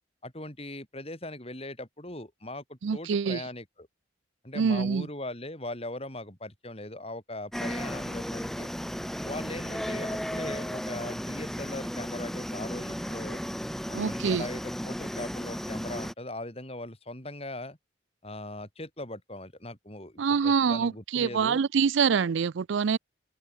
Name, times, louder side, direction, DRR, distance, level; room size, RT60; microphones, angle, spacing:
voice 1, 0.2-3.9 4.4-8.7 9.2-13.4 13.9-17.8 18.2-21.6, left 1 dB, 30° left, 7.4 m, -40 dB
voice 2, 2.8-3.4 4.5-5.1 13.9-14.5 20.2-23.0, right 6 dB, 75° right, 0.4 m, -25 dB
sound 1, 7.5-16.1, equal, ahead, 0.5 m, -34 dB
open air
head